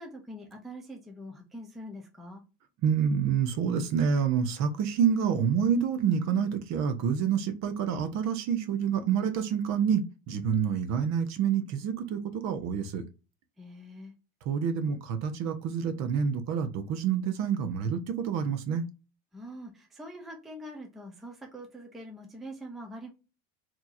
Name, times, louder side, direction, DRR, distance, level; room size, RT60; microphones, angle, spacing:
voice 1, 0.0-2.4 13.6-14.1 19.3-23.1, equal, ahead, 1 dB, 0.5 m, -44 dB
voice 2, 2.8-13.0 14.5-18.8, right 7 dB, 40° right, 8 dB, 0.8 m, -28 dB
4.3 x 2.9 x 2.5 m, 0.30 s
supercardioid pair, 145°, 40 cm